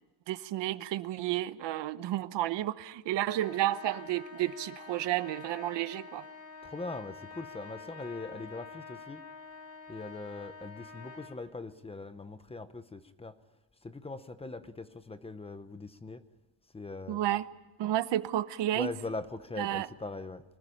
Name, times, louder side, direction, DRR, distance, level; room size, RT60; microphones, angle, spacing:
voice 1, 0.3-6.2 17.1-17.5 17.8-18.9 19.6-19.9, right 13 dB, 75° right, 1.1 m, -31 dB
Trumpet, 3.2-11.4, left 4 dB, 40° left, 3.3 m, -48 dB
voice 2, 6.6-9.2 9.9-13.3 13.8-16.2 16.7-17.2 18.7-20.4, left 3 dB, 15° left, 0.8 m, -41 dB
25.5 x 20.0 x 10.0 m
cardioid pair, 170°, 43 cm